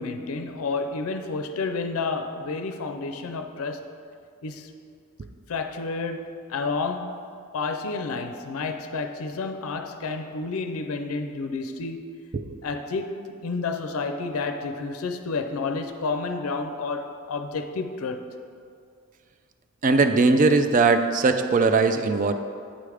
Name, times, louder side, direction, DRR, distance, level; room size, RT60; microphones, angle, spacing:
voice 1, 0.0-3.8 4.4-4.7 5.5-7.2 7.5-12.2 12.6-18.4, left 4 dB, 75° left, 0.5 m, -30 dB
voice 2, 19.8-22.3, right 3 dB, 40° right, 0.4 m, -20 dB
8.6 x 3.4 x 4.9 m
head